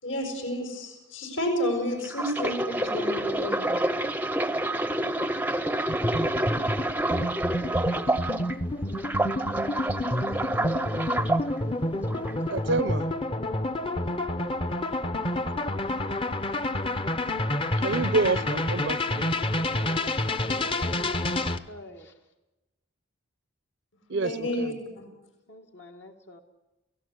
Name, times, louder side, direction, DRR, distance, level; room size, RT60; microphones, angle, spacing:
voice 1, 0.0-3.8 24.2-25.0, equal, 75° left, 4 dB, 6.3 m, -30 dB
sound 1, 2.0-8.5 8.9-11.4 12.1-12.3, right 1 dB, 10° right, 0.7 m, -28 dB
sound 2, 5.9-21.6, left 1 dB, 25° left, 0.9 m, -29 dB
voice 2, 8.0-8.5 19.6-20.1 20.5-22.1 25.5-26.4, left 1 dB, 60° left, 2 dB, 1.7 m, -46 dB
voice 3, 12.5-13.1 17.8-19.4 24.1-24.8, right 3 dB, 60° right, 14 dB, 0.7 m, -28 dB
29.0 x 17.5 x 8.2 m, 1.0 s
head